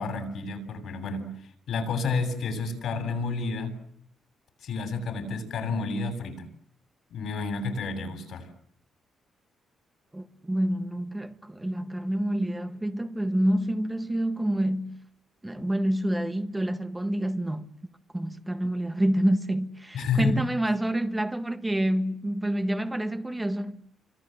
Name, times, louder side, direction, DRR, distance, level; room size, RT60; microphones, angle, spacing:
voice 1, 0.0-3.8 4.6-6.5 7.1-8.5 19.9-20.4, left 3 dB, 75° left, 7.5 m, -30 dB
voice 2, 10.1-15.0 15.4-17.7 18.1-23.8, right 1 dB, 10° right, 1.6 m, -27 dB
29.0 x 25.5 x 7.8 m
cardioid pair, 105°, 0 cm